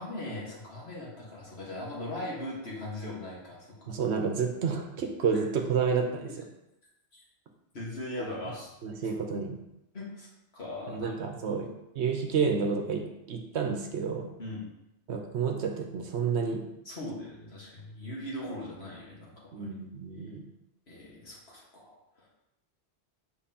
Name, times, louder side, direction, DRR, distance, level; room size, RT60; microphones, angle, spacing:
voice 1, 0.0-3.8 5.3-5.4 6.2-6.3 7.7-8.7 9.9-10.3 10.5-11.1 11.4-11.7 14.4-14.7 16.9-19.7 20.9-22.3, left 1 dB, 60° left, -5 dB, 1.8 m, -39 dB
voice 2, 3.9-6.5 8.2-8.3 8.8-9.6 10.9-11.7 12.0-14.3 15.1-16.6 19.5-20.4, right 5 dB, 75° right, 3 dB, 1.0 m, -30 dB
7.2 x 4.6 x 2.9 m, 0.88 s
omnidirectional pair, 1.2 m